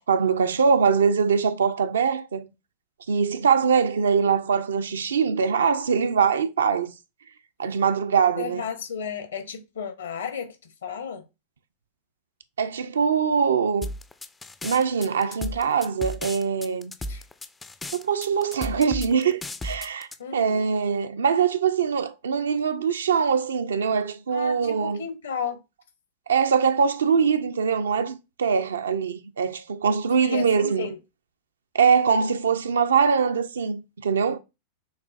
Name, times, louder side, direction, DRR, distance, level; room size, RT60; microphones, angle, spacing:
voice 1, 0.1-2.5 3.1-6.9 7.6-8.6 12.6-13.9 14.6-16.9 17.9-25.0 26.3-30.9 31.7-34.4, right 6 dB, 70° right, 0.4 m, -23 dB
voice 2, 8.4-11.2 17.1-17.2 20.2-20.6 24.3-25.6 30.2-31.0, left 6 dB, 65° left, 0.8 m, -33 dB
sound 1, 13.8-20.2, left 1 dB, 10° left, 0.3 m, -34 dB
6.5 x 2.4 x 2.4 m
figure-of-eight pair, 90°, 0 cm